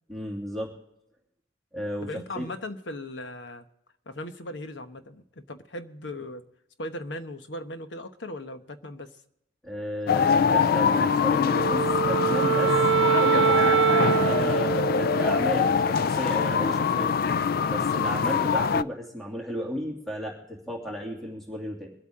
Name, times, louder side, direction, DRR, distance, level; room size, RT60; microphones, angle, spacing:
voice 1, 0.1-0.7 1.7-2.5 9.6-13.8 14.1-17.1 17.7-21.9, equal, ahead, -2 dB, 2.8 m, -34 dB
voice 2, 2.0-3.6 4.1-6.4 6.8-9.2, left 1 dB, 75° left, 8 dB, 1.1 m, -38 dB
sound 1, 10.1-18.8, left 6 dB, 55° left, 0.4 m, -24 dB
Wind instrument woodwind instrument, 11.5-16.0, right 9 dB, 70° right, 0.6 m, -24 dB
24.5 x 8.5 x 3.7 m, 0.80 s
head